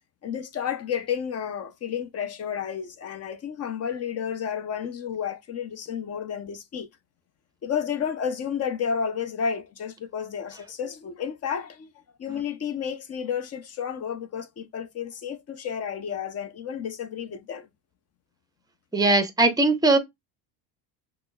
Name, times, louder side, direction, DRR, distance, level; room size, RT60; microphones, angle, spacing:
voice 1, 0.2-6.9 7.6-11.9 12.2-17.7, left 7 dB, 35° left, 0.6 m, -31 dB
voice 2, 18.9-20.0, right 2 dB, 10° right, 0.6 m, -20 dB
5.9 x 2.1 x 2.2 m
supercardioid pair, 105°, 44 cm